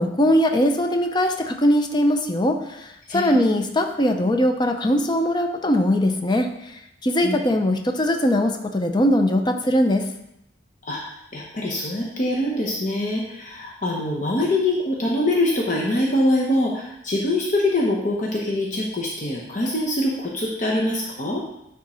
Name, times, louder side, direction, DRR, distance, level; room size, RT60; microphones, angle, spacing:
voice 1, 0.0-10.1, left 1 dB, 25° left, 5 dB, 0.6 m, -21 dB
voice 2, 3.1-3.6 7.2-7.4 10.8-11.0 11.3-21.4, left 1 dB, 45° left, -3 dB, 0.9 m, -24 dB
9.8 x 3.7 x 4.3 m, 0.83 s
head